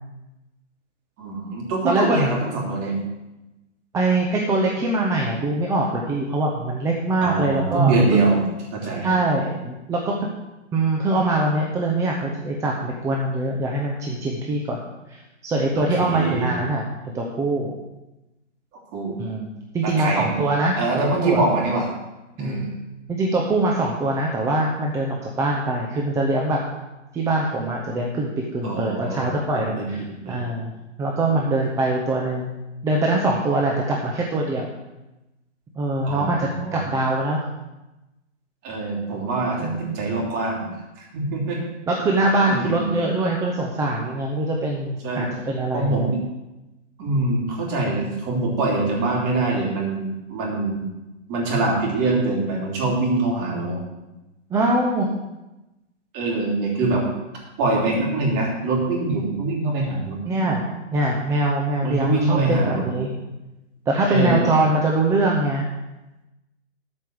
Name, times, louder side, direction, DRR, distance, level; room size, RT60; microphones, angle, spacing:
voice 1, 1.2-2.9 7.2-8.4 8.7-9.1 15.8-16.6 18.9-19.1 19.8-20.4 20.7-21.9 22.4-22.7 28.6-29.3 29.5-30.4 36.0-36.8 38.6-40.7 41.1-41.6 42.5-43.0 45.0-45.3 45.7-46.2 47.0-50.9 51.3-53.8 56.1-57.0 57.6-60.2 61.8-62.9 64.1-64.6, right 2 dB, 25° right, -2 dB, 3.4 m, -24 dB
voice 2, 1.8-2.2 3.9-8.2 9.0-10.2 10.7-14.8 15.1-16.8 17.1-17.8 19.2-19.5 19.7-21.4 22.4-22.7 23.1-26.6 27.1-30.7 31.0-32.5 32.8-34.7 35.8-37.4 38.8-38.9 39.6-40.0 41.9-46.1 54.5-55.1 60.2-63.1 63.9-65.6, right 2 dB, 10° right, -1 dB, 0.7 m, -23 dB
13.0 x 5.3 x 7.9 m, 1.0 s
hypercardioid pair, 150°, 38 cm